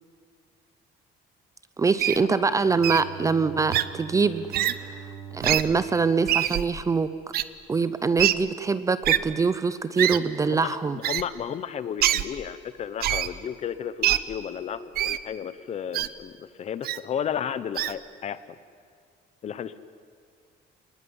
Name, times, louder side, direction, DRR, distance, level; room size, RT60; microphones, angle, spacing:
voice 1, 1.8-4.5 4.8-4.9 5.3-7.1 7.7-11.0, right 4 dB, 20° right, 14 dB, 0.6 m, -24 dB
Wild animals, 2.0-2.2 2.8-3.0 3.7-3.8 4.5-4.7 5.4-5.6 6.3-6.6 7.3-7.4 8.2-8.3 9.0-9.2 10.0-10.2 11.0-11.2 12.0-12.2 13.0-13.3 14.0-14.2 15.0-15.2 15.9-16.1 16.8-17.0 17.8-17.9, right 13 dB, 60° right, 0.9 m, -23 dB
Bowed string instrument, 2.2-7.4, right 8 dB, 45° right, 8.0 m, -45 dB
voice 2, 10.5-18.4 19.4-19.8, left 8 dB, 40° left, 14 dB, 1.0 m, -33 dB
27.0 x 20.0 x 9.7 m, 2.1 s
cardioid pair, 170°, 18 cm